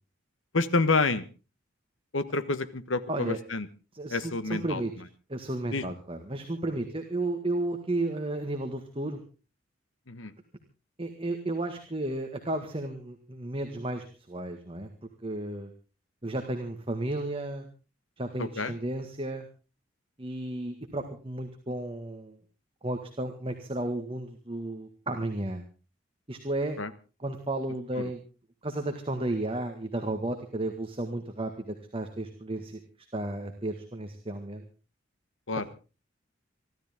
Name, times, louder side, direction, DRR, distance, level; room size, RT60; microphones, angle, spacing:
voice 1, 0.5-1.2 2.1-3.7 4.1-4.8 5.7-5.9 10.1-10.3 18.4-18.7 26.8-26.9 28.0-28.1 35.5-35.6, left 3 dB, 85° left, 14 dB, 1.4 m, -28 dB
voice 2, 3.9-4.9 5.3-9.2 11.0-14.9 15.2-15.7 16.2-17.7 18.2-19.5 20.2-22.4 22.8-25.6 26.3-26.8 27.2-28.2 28.6-32.8 33.1-34.6, right 2 dB, 30° right, 5 dB, 1.8 m, -33 dB
25.0 x 13.0 x 3.7 m, 0.34 s
head